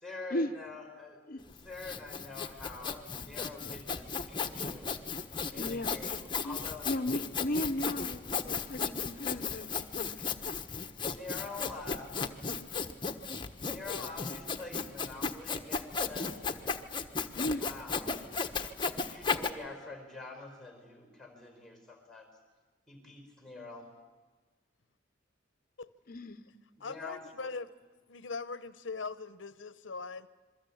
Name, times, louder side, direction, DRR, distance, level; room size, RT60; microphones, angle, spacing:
voice 1, 0.0-4.9 5.5-6.2 6.4-6.9 11.0-12.1 13.7-16.7 17.6-18.3 19.0-22.3 22.9-23.9 26.8-27.5, left 3 dB, ahead, 4.5 m, -46 dB
Sawing, 1.5-19.5, left 5 dB, 25° left, 1.3 m, -35 dB
voice 2, 5.5-5.9 6.4-10.3 17.3-17.7 26.1-26.4, left 1 dB, 50° left, 0.8 m, -35 dB
voice 3, 26.8-27.7 28.1-30.3, left 4 dB, 75° left, 0.8 m, -40 dB
27.5 x 22.5 x 8.6 m
head